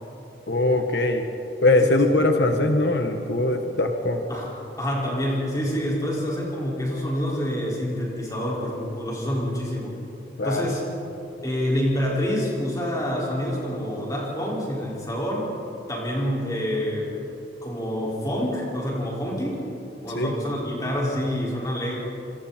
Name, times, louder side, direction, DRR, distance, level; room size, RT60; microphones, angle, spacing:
voice 1, 0.5-1.2 1.6-4.2 10.4-10.7 20.1-20.3, left 2 dB, 75° left, 5 dB, 1.4 m, -21 dB
voice 2, 4.8-10.0 10.4-10.8 11.4-15.4 15.9-17.2 17.6-19.6 20.0-21.9, equal, 20° left, -5 dB, 5.6 m, -27 dB
27.5 x 26.5 x 4.5 m, 2.8 s
head